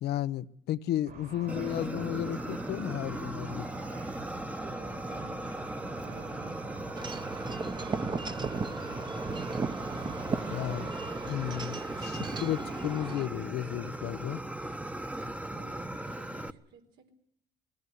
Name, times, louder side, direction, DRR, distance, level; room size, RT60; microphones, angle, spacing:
voice 1, 0.0-3.7 10.5-10.9 11.2-14.4, left 12 dB, 75° left, 0.8 m, -33 dB
Car / Traffic noise roadway noise / Engine, 1.1-11.6, right 5 dB, 65° right, 5.2 m, -47 dB
Fire, 1.5-16.5, right 1 dB, 10° right, 1.0 m, -38 dB
voice 2, 4.5-5.5 5.8-9.3 15.2-17.1, right 5 dB, 85° right, 4.2 m, -55 dB
Wind chime / Wind, 7.0-13.3, right 4 dB, 25° right, 1.0 m, -37 dB
21.0 x 16.5 x 9.5 m
cardioid pair, 110°, 17 cm